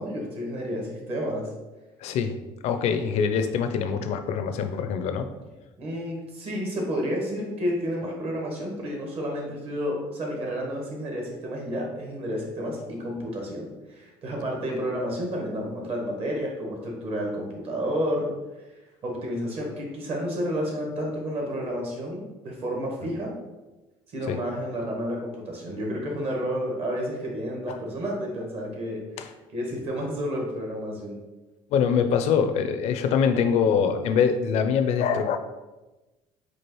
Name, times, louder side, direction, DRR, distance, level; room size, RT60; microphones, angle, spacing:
voice 1, 0.0-1.5 5.8-18.3 19.0-23.3 24.1-29.0 29.5-31.2, equal, 55° right, 0 dB, 1.3 m, -30 dB
voice 2, 2.0-2.4 2.6-5.3 24.3-24.4 29.2-29.3 31.7-35.4, left 7 dB, 65° left, 8 dB, 0.4 m, -24 dB
4.6 x 2.4 x 3.1 m, 1.1 s
supercardioid pair, 85°, 12 cm